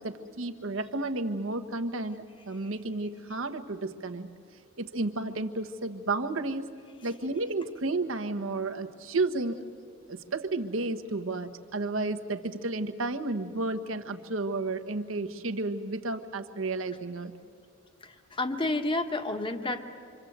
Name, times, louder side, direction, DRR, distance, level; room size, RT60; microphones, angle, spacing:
voice 1, 0.0-4.3 4.8-6.7 7.0-9.6 10.1-17.3, right 2 dB, 75° right, 7 dB, 1.2 m, -32 dB
voice 2, 18.3-19.8, left 2 dB, 25° left, 7 dB, 1.3 m, -29 dB
26.5 x 25.5 x 8.0 m, 2.4 s
head